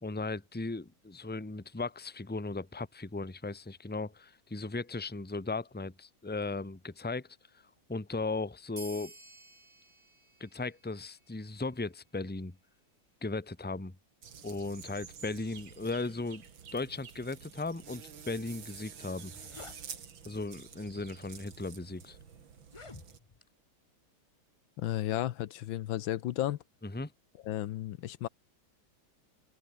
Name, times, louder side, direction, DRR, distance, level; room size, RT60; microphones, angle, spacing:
voice 1, 0.0-7.3 7.9-9.1 10.4-12.5 13.2-13.9 14.4-16.4 16.7-19.3 20.2-22.2 26.8-27.1, left 3 dB, 5° left, 1.2 m, -37 dB
sound 1, 8.8-11.8, right 2 dB, 40° right, 6.0 m, -53 dB
sound 2, 14.2-23.2, right 7 dB, 75° right, 2.8 m, -49 dB
sound 3, 18.7-18.8 19.1-19.8 20.7-20.9 21.6-21.7 22.6-23.5, left 3 dB, 25° left, 0.7 m, -50 dB
voice 2, 24.8-26.6 27.4-28.3, left 13 dB, 80° left, 1.6 m, -33 dB
omnidirectional pair, 2.1 m